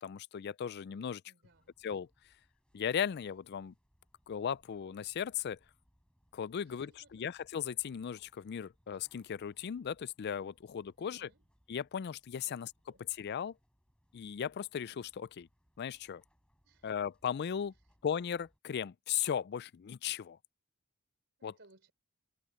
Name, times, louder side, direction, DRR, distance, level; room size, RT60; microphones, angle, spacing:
voice 1, 0.0-1.2 1.8-2.1 2.7-3.7 4.3-5.6 6.3-11.3 11.7-12.7 13.0-13.5 14.1-15.5 15.8-16.2 16.8-17.7 18.0-20.4 21.4-21.5, left 8 dB, 45° left, 0.3 m, -37 dB
voice 2, 1.3-1.7 6.6-7.3 11.0-11.4 12.4-12.6 12.9-13.0 16.6-16.9 21.4-21.9, right 2 dB, 50° right, 4.4 m, -64 dB
sound 1, 1.4-18.6, equal, 5° left, 5.5 m, -73 dB
head